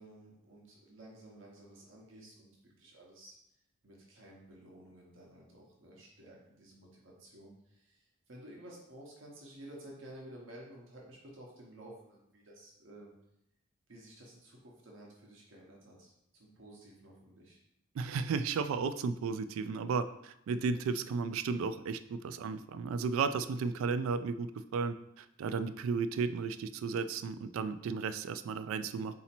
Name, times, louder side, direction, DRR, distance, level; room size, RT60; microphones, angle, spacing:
voice 1, 0.0-3.4 3.8-13.1 13.9-17.6, right 1 dB, 70° right, -3 dB, 0.9 m, -53 dB
voice 2, 17.9-29.1, right 5 dB, 85° right, 12 dB, 0.3 m, -34 dB
4.0 x 2.8 x 4.3 m, 0.80 s
head